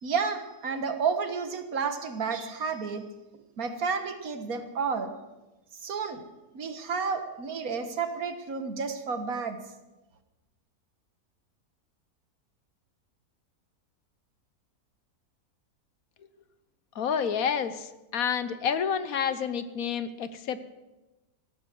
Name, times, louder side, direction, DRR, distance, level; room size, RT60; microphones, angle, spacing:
voice 1, 0.0-3.1 3.6-5.1 5.8-6.3 6.5-9.6, right 5 dB, 65° right, 8 dB, 1.8 m, -31 dB
voice 2, 16.9-20.6, left 7 dB, 65° left, 12 dB, 1.3 m, -29 dB
16.5 x 13.0 x 6.1 m, 1.0 s
omnidirectional pair, 1.6 m